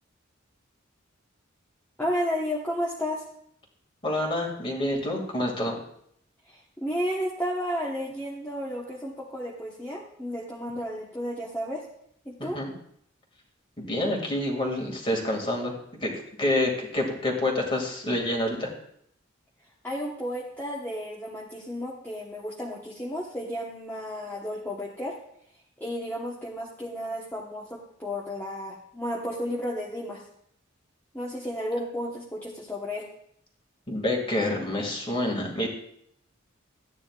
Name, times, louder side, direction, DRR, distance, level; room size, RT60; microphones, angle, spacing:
voice 1, 2.0-3.2 6.4-11.8 12.2-12.6 19.8-25.2 25.8-30.2 31.1-33.1, equal, 10° left, -5 dB, 1.1 m, -32 dB
voice 2, 4.0-5.8 12.4-12.7 13.9-15.7 16.0-16.1 16.4-18.7 33.9-35.7, left 1 dB, 25° left, 0 dB, 2.2 m, -27 dB
14.0 x 9.6 x 2.4 m, 0.70 s
head